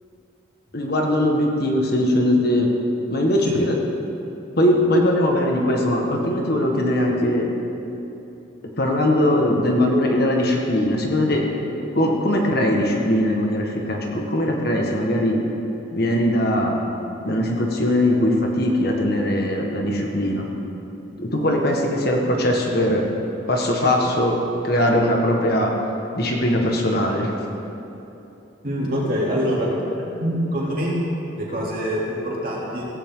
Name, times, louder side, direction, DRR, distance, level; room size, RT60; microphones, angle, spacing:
voice 1, 0.7-2.7 3.1-3.8 4.6-7.5 8.8-11.5 11.9-15.4 15.9-16.8 17.2-20.5 21.2-23.0 23.5-25.7 26.1-27.3, left 1 dB, 50° left, 0 dB, 1.7 m, -20 dB
voice 2, 28.6-29.7 30.2-30.9 31.4-32.9, equal, 45° right, -5 dB, 3.3 m, -24 dB
16.5 x 15.5 x 3.9 m, 3.0 s
head